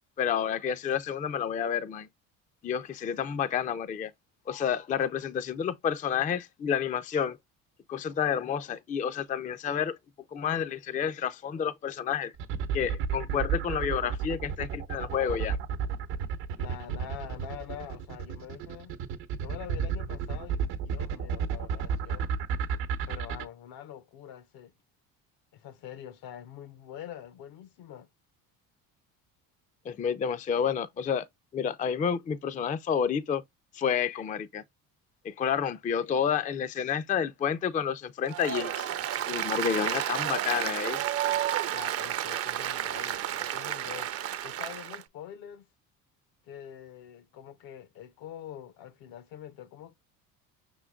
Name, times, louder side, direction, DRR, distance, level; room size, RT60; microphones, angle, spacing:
voice 1, 0.2-2.1 2.6-4.1 4.5-7.4 7.9-10.0 10.3-12.3 12.7-15.6 29.9-31.2 31.5-33.4 33.7-34.6 35.2-38.9 39.3-41.0, left 8 dB, 20° left, 0.4 m, -30 dB
sound 1, 12.4-23.4, right 7 dB, 80° right, 0.9 m, -31 dB
voice 2, 16.6-18.9 19.4-22.3 23.1-24.7 25.5-28.1 41.7-44.1 44.4-45.7 46.4-49.9, left 10 dB, 70° left, 0.8 m, -45 dB
Applause, 38.3-45.0, right 11 dB, 40° right, 0.5 m, -31 dB
5.6 x 3.8 x 2.3 m
supercardioid pair, 90°, 38 cm